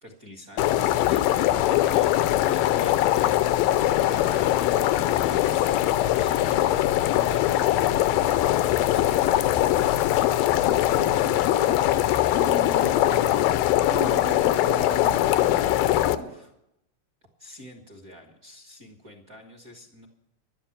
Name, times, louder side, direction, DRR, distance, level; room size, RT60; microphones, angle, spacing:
voice 1, 0.0-3.3 3.8-9.4 16.2-16.5 17.4-20.1, equal, 35° right, 1 dB, 1.4 m, -46 dB
sound 1, 0.6-16.2, left 14 dB, 85° left, 2.4 m, -22 dB
voice 2, 10.6-11.8 12.3-13.5 13.9-15.7 16.1-16.4, right 5 dB, 65° right, 2 dB, 0.7 m, -38 dB
12.0 x 9.9 x 8.7 m, 0.81 s
omnidirectional pair, 4.0 m